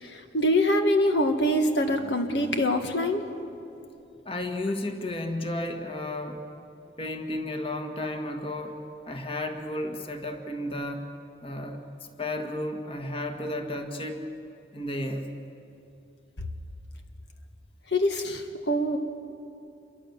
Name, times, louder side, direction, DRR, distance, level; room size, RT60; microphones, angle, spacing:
voice 1, 0.0-3.2 17.9-19.0, left 1 dB, 80° left, 5 dB, 1.8 m, -24 dB
voice 2, 4.3-6.4 7.0-11.1 11.4-11.8 12.2-14.3 14.7-15.3, left 1 dB, 30° left, 4 dB, 1.9 m, -33 dB
27.5 x 23.0 x 7.2 m, 2.8 s
head